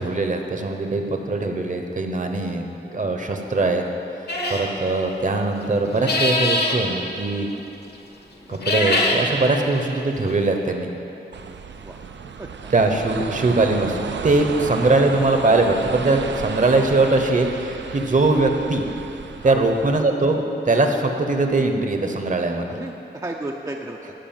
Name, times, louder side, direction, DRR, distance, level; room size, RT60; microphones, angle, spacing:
voice 1, 0.0-2.6 2.9-3.8 4.5-7.5 8.5-10.9 12.7-18.8 19.4-22.7, right 2 dB, 45° right, 4 dB, 1.0 m, -21 dB
voice 2, 3.3-3.7 7.4-7.6 11.8-12.0 12.4-12.7 19.4-19.6 22.7-24.1, right 2 dB, 20° right, 1 dB, 0.6 m, -35 dB
sound 1, 4.3-4.7 5.9-6.8 8.5-9.2, left 2 dB, 60° left, 1.4 m, -22 dB
sound 2, 11.3-20.0, right 6 dB, 70° right, 0.5 m, -33 dB
13.0 x 4.9 x 8.9 m, 3.0 s
wide cardioid pair, 130°, 19 cm